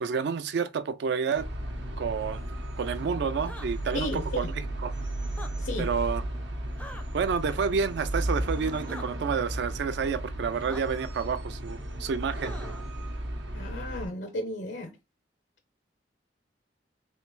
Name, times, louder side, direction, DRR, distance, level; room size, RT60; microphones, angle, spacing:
voice 1, 0.0-1.5 2.0-2.4 2.8-4.9 5.8-6.2 7.1-12.5, right 6 dB, 65° right, 0.4 m, -29 dB
sound 1, 1.4-14.1, right 1 dB, 85° right, 0.8 m, -34 dB
sound 2, 3.4-3.7 5.3-5.5 6.8-7.0 8.9-9.1 10.7-10.8 12.4-12.8, left 1 dB, 5° left, 0.4 m, -43 dB
voice 2, 3.9-4.5 5.6-5.9 13.5-14.9, left 1 dB, 80° left, 0.6 m, -34 dB
3.2 x 3.1 x 3.0 m
head